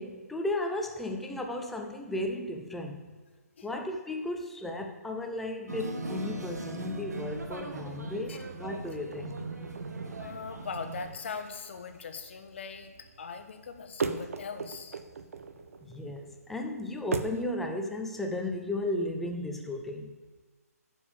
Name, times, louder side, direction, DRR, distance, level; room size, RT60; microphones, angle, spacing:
voice 1, 0.0-3.1 3.6-9.5 15.8-20.1, left 1 dB, ahead, 3 dB, 0.5 m, -35 dB
sound 1, 5.7-11.0, right 2 dB, 90° right, 1.6 m, -39 dB
sound 2, 8.7-17.5, right 5 dB, 60° right, 0.8 m, -40 dB
voice 2, 10.2-15.0, left 5 dB, 45° left, 8 dB, 1.0 m, -40 dB
9.8 x 5.3 x 7.0 m, 1.4 s
hypercardioid pair, 165°, 9 cm